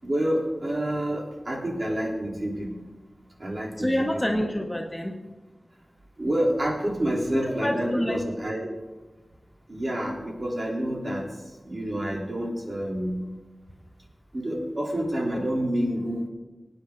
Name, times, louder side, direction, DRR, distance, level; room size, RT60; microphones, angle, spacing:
voice 1, 0.0-2.9 3.4-4.1 6.2-8.7 9.7-11.3 11.6-13.2 14.3-16.3, right 1 dB, 45° right, -2 dB, 3.7 m, -28 dB
voice 2, 3.8-5.2 7.4-8.2, equal, 10° left, 1 dB, 1.5 m, -27 dB
23.5 x 9.6 x 4.0 m, 1.2 s
wide cardioid pair, 80°, 0 cm